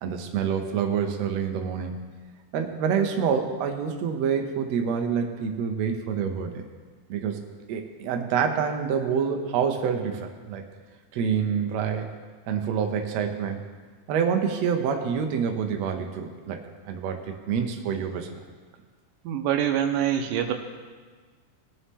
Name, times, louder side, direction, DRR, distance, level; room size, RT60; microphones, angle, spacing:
voice 1, 0.0-2.0 2.5-6.5 7.1-10.6 11.1-12.1 12.5-13.6 14.1-16.6 16.9-17.2 17.5-18.3, right 7 dB, 65° right, 4 dB, 1.8 m, -27 dB
voice 2, 19.2-20.5, right 10 dB, 85° right, 6 dB, 2.3 m, -25 dB
20.5 x 7.0 x 3.7 m, 1.5 s
omnidirectional pair, 3.9 m